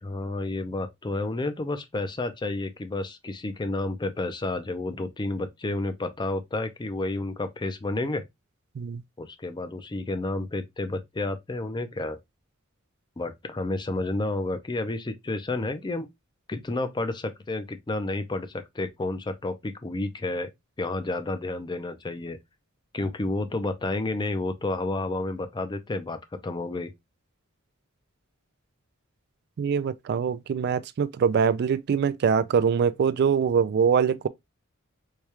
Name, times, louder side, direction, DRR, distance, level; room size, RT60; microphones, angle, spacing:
voice 1, 0.0-8.2 9.2-12.2 13.2-16.1 16.5-20.5 20.8-22.4 22.9-26.9, left 2 dB, 20° left, 0.5 m, -30 dB
voice 2, 29.6-34.3, right 6 dB, 50° right, 0.3 m, -23 dB
4.7 x 2.3 x 2.8 m
head